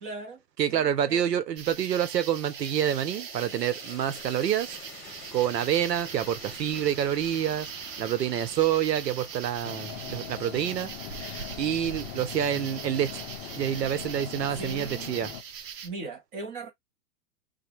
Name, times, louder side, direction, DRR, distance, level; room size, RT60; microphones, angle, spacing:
voice 1, 0.0-0.4 0.7-1.2 14.5-15.1 15.8-16.7, right 3 dB, 20° right, 0.5 m, -39 dB
voice 2, 0.6-4.7 5.3-7.7 8.0-10.9 11.6-13.3 13.5-15.3, right 10 dB, 85° right, 0.7 m, -27 dB
sound 1, 1.6-12.6, left 4 dB, 20° left, 1.0 m, -49 dB
sound 2, 1.6-15.9, right 7 dB, 55° right, 0.7 m, -41 dB
sound 3, 9.6-15.4, left 12 dB, 45° left, 0.5 m, -41 dB
3.3 x 2.1 x 3.0 m
hypercardioid pair, 130°, 48 cm